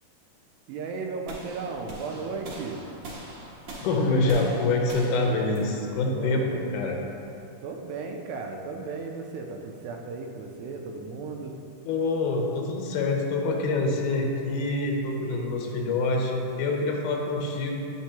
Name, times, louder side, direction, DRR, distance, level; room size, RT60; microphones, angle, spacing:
voice 1, 0.7-2.8 6.2-6.9 7.6-11.6 15.2-15.7, right 4 dB, 80° right, 2 dB, 1.8 m, -36 dB
sound 1, 1.3-7.4, right 1 dB, 60° right, 2.3 m, -43 dB
voice 2, 3.8-6.4 6.7-7.0 11.9-17.7, left 2 dB, 80° left, 1 dB, 2.2 m, -26 dB
8.9 x 4.6 x 2.8 m, 2.7 s
omnidirectional pair, 3.7 m